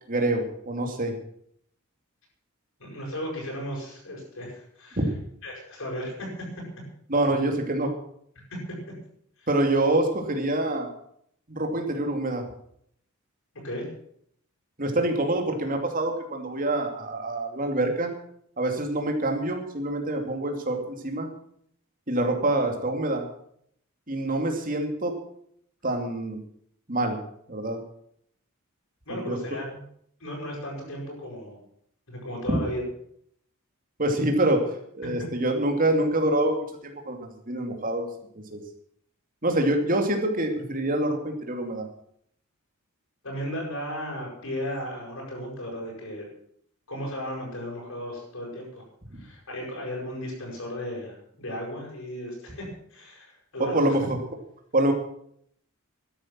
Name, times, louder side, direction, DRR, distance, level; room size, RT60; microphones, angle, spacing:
voice 1, 0.1-1.2 5.0-5.1 7.1-7.9 9.5-10.9 11.5-12.4 14.8-18.1 18.6-21.3 22.1-23.2 24.1-25.1 25.8-26.4 26.9-27.2 27.5-27.8 29.1-29.4 32.5-32.6 34.0-38.1 38.5-38.6 39.4-41.9 49.1-49.2 53.6-54.2 54.7-54.9, right 1 dB, 40° right, 3 dB, 2.6 m, -26 dB
voice 2, 2.8-5.0 5.4-6.5 8.5-8.6 9.4-9.5 13.6-13.9 29.1-29.8 30.2-31.6 32.1-32.8 43.2-46.3 46.9-48.8 49.1-54.0, equal, 65° left, -2 dB, 7.1 m, -35 dB
13.0 x 10.5 x 7.5 m, 0.68 s
head